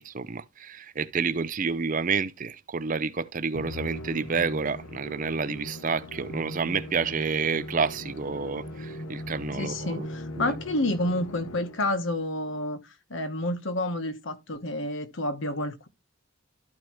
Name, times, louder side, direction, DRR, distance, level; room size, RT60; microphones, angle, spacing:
voice 1, 0.0-10.1 10.4-10.5, right 5 dB, 40° right, 0.5 m, -29 dB
Musical instrument, 3.5-12.0, left 1 dB, 80° left, 1.0 m, -39 dB
voice 2, 9.5-15.9, left 1 dB, 60° left, 1.1 m, -29 dB
13.0 x 4.7 x 3.1 m
head